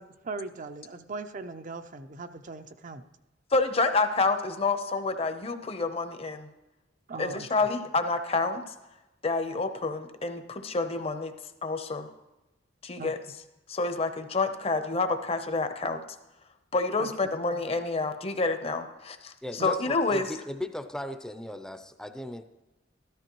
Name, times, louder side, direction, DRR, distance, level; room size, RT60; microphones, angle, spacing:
voice 1, 0.0-3.0 7.1-7.5 13.0-13.1 17.0-17.3 19.6-19.7, right 3 dB, 40° right, 9 dB, 0.6 m, -39 dB
voice 2, 3.5-6.5 7.2-8.6 9.2-11.3 11.6-12.1 12.8-13.2 13.7-16.0 16.7-19.3 19.6-20.3, left 3 dB, 30° left, 8 dB, 0.8 m, -28 dB
voice 3, 19.4-22.5, left 1 dB, 5° left, 8 dB, 0.6 m, -37 dB
13.5 x 12.5 x 3.0 m, 1.0 s
head